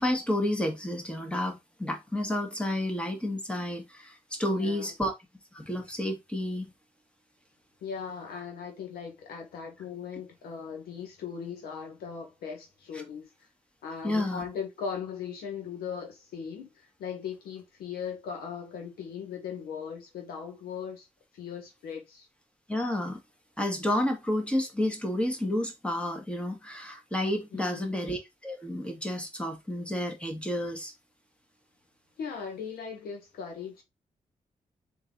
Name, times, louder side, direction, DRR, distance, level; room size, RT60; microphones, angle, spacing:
voice 1, 0.0-5.1 5.5-6.7 12.9-13.0 14.0-14.5 22.7-23.2 23.6-30.9, left 1 dB, 5° left, 1.7 m, -30 dB
voice 2, 4.4-4.9 7.8-13.3 13.8-21.1 21.3-22.3 27.5-28.0 32.2-33.8, left 6 dB, 85° left, 1.5 m, -38 dB
3.8 x 2.9 x 3.9 m
supercardioid pair, 45°, 16 cm